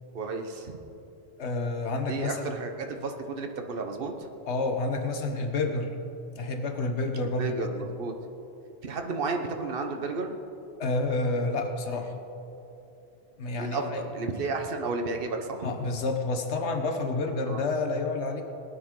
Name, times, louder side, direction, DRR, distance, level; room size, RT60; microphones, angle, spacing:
voice 1, 0.1-0.8 2.1-4.1 7.4-8.1 8.8-10.4 13.6-15.7 17.4-17.6, right 3 dB, 55° right, 4 dB, 1.2 m, -32 dB
voice 2, 1.4-2.5 4.5-5.9 6.3-7.5 10.8-12.1 13.4-14.0 15.6-18.4, left 3 dB, 90° left, 5 dB, 1.3 m, -29 dB
19.0 x 10.0 x 3.8 m, 2.8 s
omnidirectional pair, 1.1 m